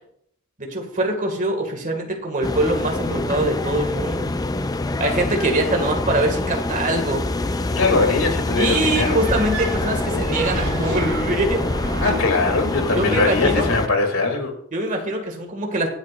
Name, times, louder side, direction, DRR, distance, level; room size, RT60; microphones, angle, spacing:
voice 1, 0.6-4.3 5.0-7.3 8.6-11.6 12.9-13.7 14.7-15.9, right 1 dB, 40° right, 3 dB, 2.0 m, -23 dB
sound 1, 2.4-13.9, left 2 dB, 20° left, 0.4 m, -25 dB
voice 2, 7.7-9.2 12.0-14.5, left 3 dB, 75° left, 4 dB, 2.6 m, -21 dB
sound 2, 9.2-13.2, right 1 dB, 85° right, 3.6 m, -30 dB
24.0 x 8.2 x 2.5 m, 0.70 s
head